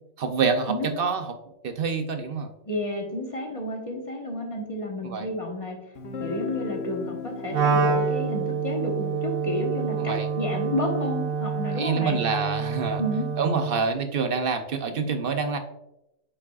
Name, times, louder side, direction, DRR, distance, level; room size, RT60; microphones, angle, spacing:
voice 1, 0.2-1.3 1.6-2.5 5.0-5.3 10.0-10.3 11.7-13.0 13.4-15.6, right 5 dB, 60° right, 7 dB, 0.6 m, -26 dB
voice 2, 2.6-5.8 6.2-12.2 13.0-13.3, left 1 dB, 25° left, 1 dB, 1.1 m, -31 dB
Guitar, 6.0-11.7, left 4 dB, 60° left, 1.0 m, -39 dB
Wind instrument woodwind instrument, 7.5-13.9, right 5 dB, 85° right, 1.2 m, -27 dB
8.4 x 4.9 x 2.4 m, 0.90 s
omnidirectional pair, 1.4 m